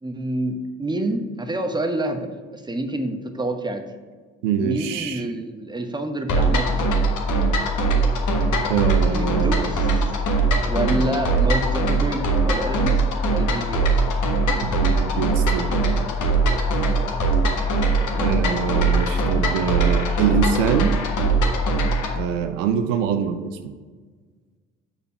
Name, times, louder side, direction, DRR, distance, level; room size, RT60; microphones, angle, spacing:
voice 1, 0.0-3.8 4.6-7.0 9.1-10.0 10.6-14.1 16.8-17.1, right 1 dB, 10° right, 6 dB, 1.0 m, -28 dB
voice 2, 4.4-5.3 8.7-9.7 10.9-11.0 11.3-11.4 14.6-16.0 18.1-21.0 22.1-23.7, right 7 dB, 80° right, 8 dB, 0.6 m, -25 dB
sound 1, 6.3-22.2, right 2 dB, 55° left, 1.3 m, -21 dB
6.8 x 4.5 x 5.4 m, 1.5 s
hypercardioid pair, 50°, 37 cm